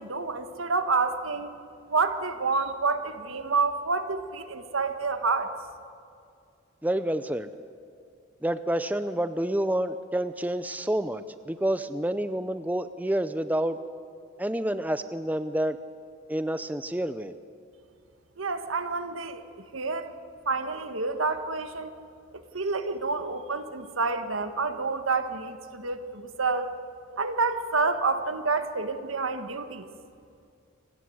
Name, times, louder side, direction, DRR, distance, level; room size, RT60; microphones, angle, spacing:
voice 1, 0.0-1.5 1.9-5.5 18.4-19.4 19.7-20.1 20.4-21.9 22.3-26.7 27.2-29.9, right 4 dB, 85° right, 9 dB, 1.5 m, -28 dB
voice 2, 6.8-7.5 8.4-13.8 14.4-15.8 16.3-17.3, right 1 dB, 10° right, 11 dB, 0.5 m, -28 dB
25.5 x 18.5 x 7.9 m, 2.4 s
head